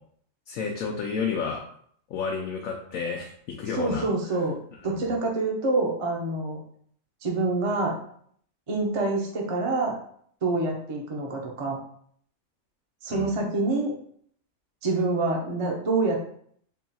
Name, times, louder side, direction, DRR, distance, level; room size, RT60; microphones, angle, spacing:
voice 1, 0.5-1.6 2.1-3.3 3.6-4.1 13.1-13.3, left 5 dB, 85° left, 0 dB, 1.0 m, -30 dB
voice 2, 3.7-4.6 4.8-6.6 7.2-8.0 8.7-9.9 10.4-11.8 13.0-13.9 14.8-16.2, right 3 dB, 35° right, 0 dB, 0.6 m, -26 dB
3.7 x 2.3 x 4.1 m, 0.62 s
omnidirectional pair, 1.4 m